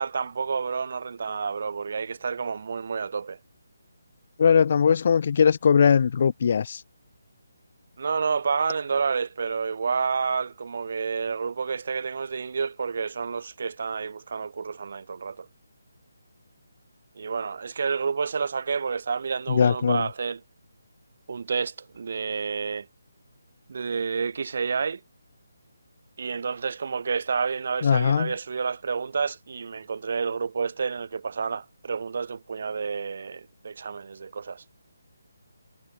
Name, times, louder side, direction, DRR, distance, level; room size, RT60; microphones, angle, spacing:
voice 1, 0.0-3.4 8.0-15.5 17.1-20.4 21.3-22.9 23.7-25.0 26.2-34.6, right 5 dB, 55° right, 2.8 m, -29 dB
voice 2, 4.4-6.8 19.5-20.1 27.8-28.3, left 6 dB, 45° left, 0.9 m, -20 dB
figure-of-eight pair, 155°, 0 cm